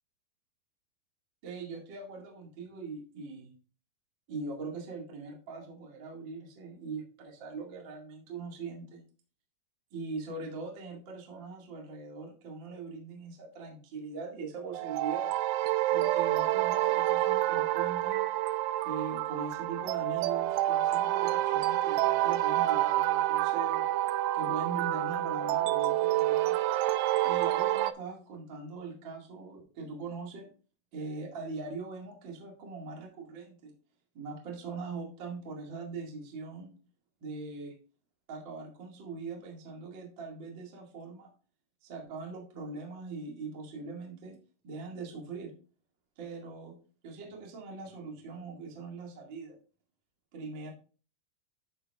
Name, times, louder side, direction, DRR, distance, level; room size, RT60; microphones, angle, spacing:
voice 1, 1.4-3.5 4.3-9.0 9.9-15.3 15.9-18.3 18.8-23.8 24.3-26.6 27.2-30.5 30.9-33.7 34.1-36.8 37.2-37.7 38.3-41.3 41.8-44.3 44.6-45.5 46.2-46.8 47.0-49.6 50.3-50.7, right 4 dB, 55° right, 0 dB, 1.2 m, -41 dB
sound 1, 14.7-27.9, right 15 dB, 85° right, 2.7 m, -28 dB
11.0 x 6.8 x 2.4 m, 0.37 s
omnidirectional pair, 5.8 m